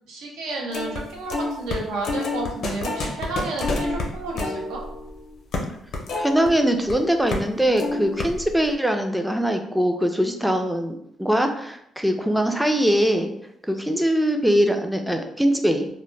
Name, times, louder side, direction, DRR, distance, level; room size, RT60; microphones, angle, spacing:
voice 1, 0.1-4.8, right 2 dB, 90° right, 0 dB, 0.6 m, -31 dB
sound 1, 0.7-1.0 1.3-6.9 7.3-7.5 7.8-8.6, left 2 dB, 70° left, 0.5 m, -29 dB
voice 2, 6.2-13.3 13.7-15.9, equal, 5° right, 5 dB, 0.3 m, -22 dB
2.1 x 2.1 x 3.1 m, 0.75 s
cardioid pair, 90°, 0 cm